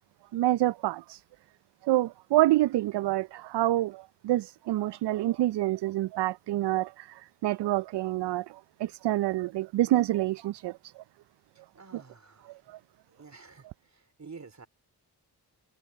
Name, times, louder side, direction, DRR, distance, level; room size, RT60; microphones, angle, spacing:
voice 1, 0.3-1.2 1.8-11.0 11.9-12.0 12.5-12.8, right 15 dB, 70° right, 0.5 m, -27 dB
voice 2, 11.5-12.6 13.1-14.7, right 4 dB, 40° right, 4.0 m, -50 dB
supercardioid pair, 45°, 43 cm